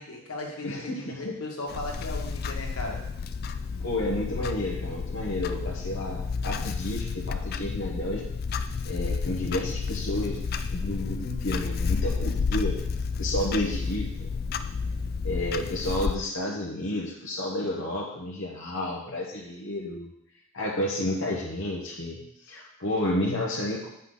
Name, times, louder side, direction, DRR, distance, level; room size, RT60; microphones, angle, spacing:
voice 1, 0.0-1.1 1.4-3.0, left 2 dB, 85° left, -1 dB, 1.6 m, -36 dB
voice 2, 0.6-1.4 3.8-8.2 8.8-12.8 13.2-14.3 15.2-20.1 20.5-23.9, left 1 dB, 65° left, -5 dB, 1.1 m, -31 dB
Clock, 1.7-16.2, left 5 dB, 45° left, 0.3 m, -31 dB
8.1 x 5.5 x 3.9 m, 0.78 s
head